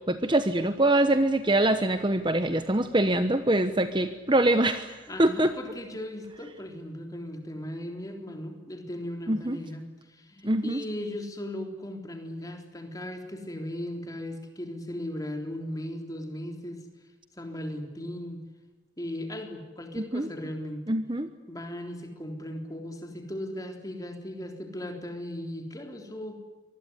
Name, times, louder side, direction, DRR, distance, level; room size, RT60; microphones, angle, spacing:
voice 1, 0.1-4.9 5.2-5.5 9.3-9.6 10.4-10.8 20.1-20.3 20.9-21.3, right 1 dB, 25° right, 9 dB, 1.1 m, -24 dB
voice 2, 5.1-16.9 17.4-18.4 19.0-20.8 21.5-26.4, left 1 dB, 20° left, 4 dB, 3.7 m, -37 dB
25.0 x 20.5 x 9.9 m, 1.2 s
head